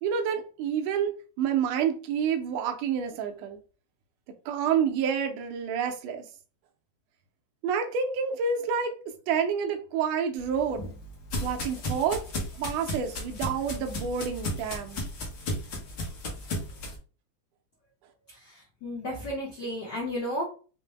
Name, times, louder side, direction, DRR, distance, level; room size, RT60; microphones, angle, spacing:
voice 1, 0.0-3.6 4.4-6.2 7.6-8.9 9.3-10.9 11.4-12.3 12.6-15.0, right 7 dB, 80° right, 1.6 m, -28 dB
sound 1, 10.4-17.0, left 1 dB, 60° left, 1.2 m, -35 dB
voice 2, 18.3-20.4, equal, 85° left, 0.9 m, -33 dB
5.0 x 2.1 x 3.2 m
omnidirectional pair, 3.5 m